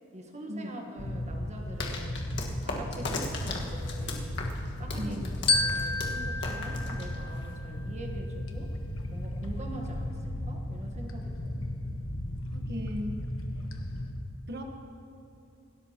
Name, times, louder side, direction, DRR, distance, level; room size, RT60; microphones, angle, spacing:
voice 1, 0.1-2.3 2.6-4.4 4.8-5.2 5.5-8.7 9.1-11.6, right 1 dB, 35° right, 2 dB, 1.4 m, -44 dB
sound 1, 1.0-14.1, left 1 dB, 85° left, 1.2 m, -35 dB
sound 2, 1.8-7.6, left 3 dB, 60° left, 1.7 m, -38 dB
voice 2, 5.0-5.4 12.5-13.2 14.5-14.6, equal, 55° right, 2 dB, 1.3 m, -37 dB
Glockenspiel, 5.5-8.0, left 3 dB, 30° left, 0.9 m, -31 dB
27.5 x 13.0 x 3.0 m, 2.5 s
head